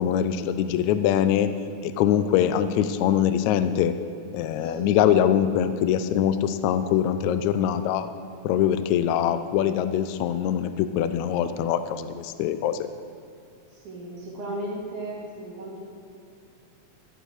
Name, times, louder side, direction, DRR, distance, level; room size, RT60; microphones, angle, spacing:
voice 1, 0.0-1.5 1.8-3.9 4.3-8.1 8.4-12.9, left 10 dB, 80° left, 11 dB, 1.8 m, -23 dB
voice 2, 4.5-5.1 13.7-15.8, right 1 dB, 75° right, -6 dB, 3.6 m, -36 dB
15.0 x 8.0 x 6.4 m, 2.5 s
omnidirectional pair, 3.5 m